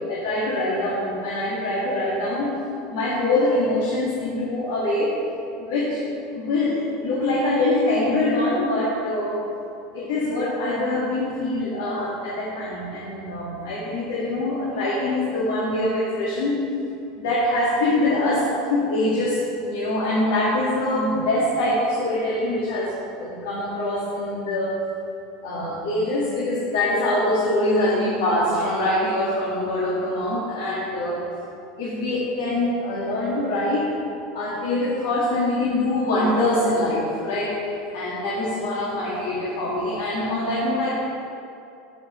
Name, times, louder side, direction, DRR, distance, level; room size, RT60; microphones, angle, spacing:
voice 1, 0.1-2.5 2.9-5.1 5.6-6.0 6.3-9.4 9.9-16.6 17.1-24.7 25.4-31.2 31.8-33.9 34.3-37.5 37.9-40.9, left 1 dB, 85° left, -7 dB, 1.8 m, -24 dB
13.5 x 5.1 x 3.1 m, 2.7 s
supercardioid pair, 160°, 0 cm